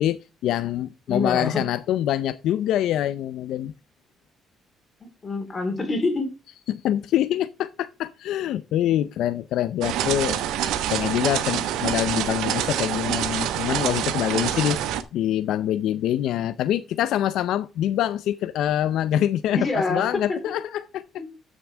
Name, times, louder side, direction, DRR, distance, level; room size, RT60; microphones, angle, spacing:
voice 1, 0.0-3.7 6.7-10.4 10.9-14.8 15.1-21.0, left 11 dB, 75° left, 0.5 m, -25 dB
voice 2, 1.1-1.7 5.0-6.3 19.5-20.4 21.2-21.3, left 3 dB, 25° left, 3.4 m, -26 dB
sound 1, 9.8-15.0, right 11 dB, 90° right, 1.1 m, -26 dB
13.5 x 6.3 x 3.4 m
cardioid pair, 140°, 0 cm